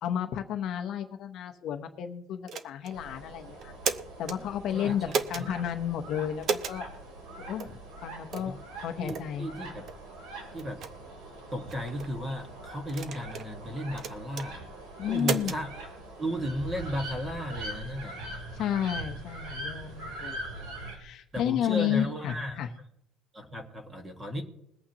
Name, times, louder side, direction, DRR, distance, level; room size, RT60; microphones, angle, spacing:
voice 1, 0.0-3.7 4.2-6.9 7.5-9.5 15.0-15.5 18.5-20.4 20.6-22.7, left 9 dB, 40° left, 5 dB, 0.8 m, -32 dB
sound 1, 2.5-3.0 3.6-4.4 5.1-5.5 6.4-6.8 7.6-7.7 8.3-8.5 9.1-9.3 9.9-10.0 10.6-10.9 11.7-12.1 12.9-13.5 14.0-14.5 15.2-15.6, right 6 dB, 35° right, 0.7 m, -33 dB
sound 2, 2.9-21.0, right 1 dB, 65° right, 3.4 m, -42 dB
voice 2, 4.7-5.5 8.4-8.5 9.0-9.9 10.5-10.8 11.5-14.6 15.1-15.7 16.2-18.2 21.3-22.6 23.3-24.4, equal, 15° right, 4 dB, 1.6 m, -35 dB
22.0 x 8.6 x 2.9 m, 0.80 s
cardioid pair, 175°, 0 cm